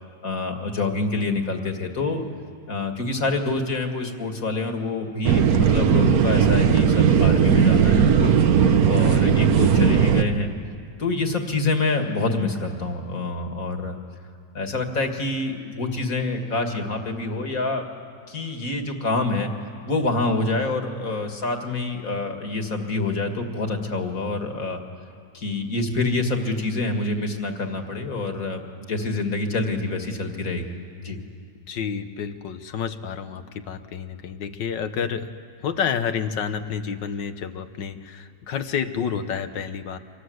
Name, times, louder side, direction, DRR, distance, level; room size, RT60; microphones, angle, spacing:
voice 1, 0.2-2.2 2.7-8.3 8.8-10.5 11.0-14.0 14.5-17.8 18.3-19.5 19.9-24.8 25.3-30.6 31.0-31.2, left 3 dB, 50° left, 4 dB, 2.5 m, -26 dB
sound 1, 5.2-10.2, right 7 dB, 60° right, 1.4 m, -17 dB
voice 2, 31.7-35.3 35.6-40.0, left 7 dB, 85° left, 9 dB, 1.9 m, -29 dB
29.5 x 25.5 x 8.0 m, 2.3 s
omnidirectional pair, 1.9 m